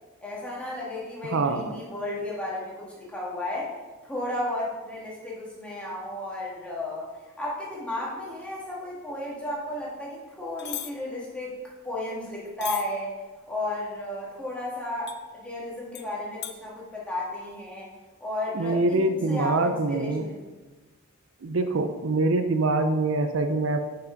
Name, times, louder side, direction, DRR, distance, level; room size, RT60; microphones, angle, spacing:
voice 1, 0.2-3.7 4.0-7.1 7.4-11.6 11.8-13.2 13.5-17.9 18.2-20.4, left 1 dB, 5° left, -6 dB, 2.1 m, -33 dB
voice 2, 1.3-1.6 18.5-20.3 21.4-23.8, right 2 dB, 75° right, 7 dB, 0.6 m, -24 dB
sound 1, 10.6-10.9 12.6-12.8 15.1-15.2 15.9-16.1 16.4-16.5, left 12 dB, 55° left, 0.5 m, -35 dB
6.1 x 5.9 x 5.2 m, 1.2 s
head